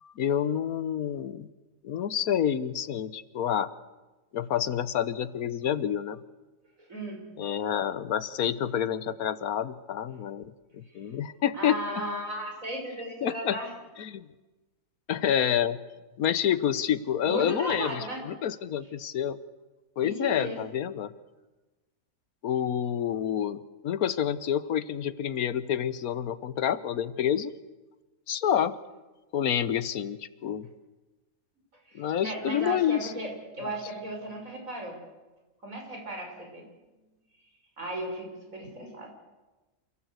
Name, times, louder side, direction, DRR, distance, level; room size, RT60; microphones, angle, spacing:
voice 1, 0.0-1.5 1.8-3.7 4.3-6.2 7.4-11.8 13.2-13.6 14.0-14.3 15.1-15.8 16.2-19.4 20.0-21.1 22.4-27.5 28.3-28.8 29.3-30.7 31.9-33.1 33.6-33.7, left 9 dB, 85° left, 15 dB, 1.4 m, -28 dB
voice 2, 6.8-7.2 11.5-13.7 17.3-18.2 20.0-20.6 31.9-35.0 35.6-36.6 37.8-39.1, right 1 dB, 65° right, 1 dB, 6.1 m, -36 dB
28.0 x 16.5 x 8.1 m, 1.2 s
omnidirectional pair, 1.5 m